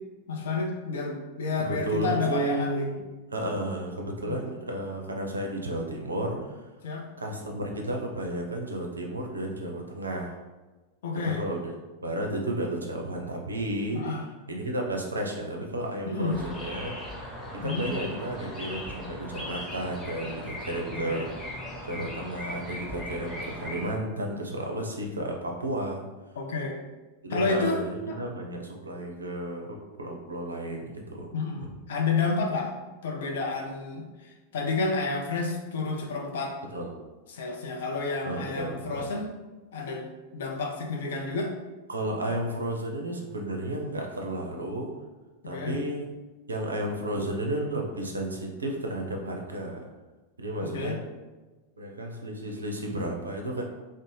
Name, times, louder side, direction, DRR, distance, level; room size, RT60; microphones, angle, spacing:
voice 1, 0.3-2.9 4.3-4.5 6.8-7.1 11.0-11.4 13.9-14.2 16.1-16.3 17.6-17.9 21.1-21.3 26.4-26.8 27.3-27.8 28.1-28.2 31.3-32.7 33.0-36.6 37.3-39.3 39.7-41.5 45.4-45.8 50.6-51.0, left 4 dB, 60° left, 2 dB, 0.4 m, -30 dB
voice 2, 1.6-3.0 3.3-6.7 7.2-10.3 11.1-11.7 12.0-14.0 14.5-16.9 17.6-21.6 21.9-26.0 27.2-31.3 31.6-31.7 36.7-36.9 38.2-39.1 41.9-44.9 45.4-46.1 46.5-49.8 50.4-51.0 51.8-53.6, right 1 dB, 75° right, 1 dB, 0.4 m, -32 dB
sound 1, 16.3-23.9, left 1 dB, 15° left, 0.6 m, -38 dB
2.5 x 2.0 x 3.1 m, 1.2 s
figure-of-eight pair, 90°, 0 cm